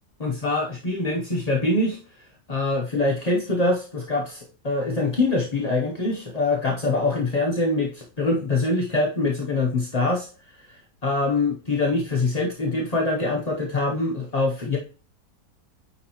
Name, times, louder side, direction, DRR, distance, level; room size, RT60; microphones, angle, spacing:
voice 1, 0.2-2.0 2.5-10.7 11.0-14.8, left 2 dB, 35° left, -1 dB, 0.7 m, -24 dB
9.5 x 4.1 x 3.0 m, 0.37 s
omnidirectional pair, 1.7 m